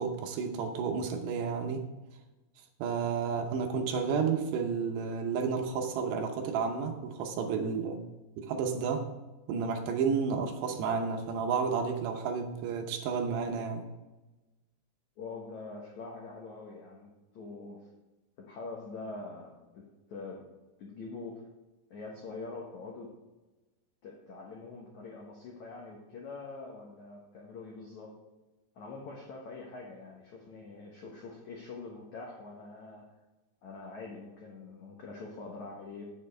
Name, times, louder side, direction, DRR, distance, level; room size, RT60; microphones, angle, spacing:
voice 1, 0.0-1.9 2.8-8.0 8.4-9.1 9.5-13.9, right 5 dB, 75° right, 4 dB, 2.8 m, -31 dB
voice 2, 15.2-17.9 18.4-20.4 20.8-21.5 21.9-23.1 24.0-28.1 28.7-33.0 33.6-36.0, left 3 dB, 80° left, -1 dB, 1.6 m, -44 dB
8.9 x 7.6 x 4.7 m, 1.1 s
omnidirectional pair, 5.2 m